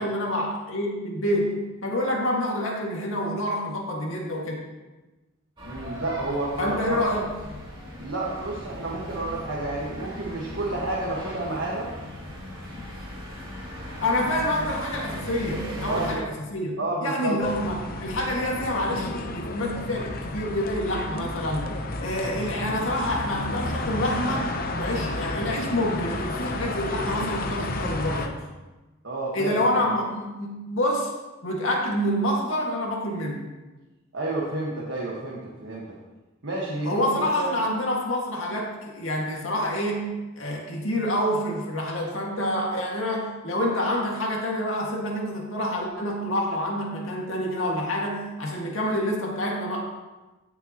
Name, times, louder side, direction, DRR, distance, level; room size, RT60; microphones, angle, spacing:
voice 1, 0.0-4.6 6.6-7.3 14.0-16.7 17.0-21.7 22.0-24.5 24.7-28.4 29.3-31.1 31.4-33.5 36.8-49.9, left 1 dB, 75° left, -1 dB, 2.0 m, -27 dB
sound 1, 5.6-16.1, left 1 dB, 25° right, 2.8 m, -38 dB
voice 2, 5.6-7.0 8.0-11.9 15.9-16.2 16.8-17.4 29.0-29.9 34.1-35.9 36.4-37.1 37.3-37.6, right 2 dB, 65° right, -4 dB, 1.5 m, -30 dB
sound 2, 17.4-28.3, left 2 dB, 45° left, 0.8 m, -31 dB
15.5 x 6.9 x 3.0 m, 1.1 s
head